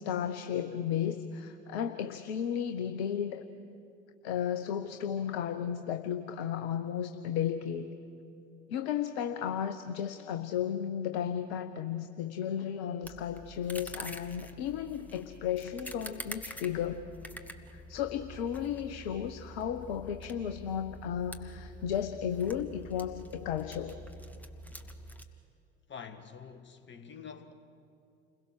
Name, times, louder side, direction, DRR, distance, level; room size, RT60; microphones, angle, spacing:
voice 1, 0.0-3.5 4.2-8.0 8.7-17.1 17.7-24.0, left 9 dB, 60° left, 1.0 m, -34 dB
sound 1, 13.0-25.2, left 1 dB, 5° left, 1.7 m, -47 dB
voice 2, 25.9-27.5, left 6 dB, 30° left, 1.8 m, -46 dB
29.5 x 21.5 x 6.6 m
figure-of-eight pair, 65°, 35 cm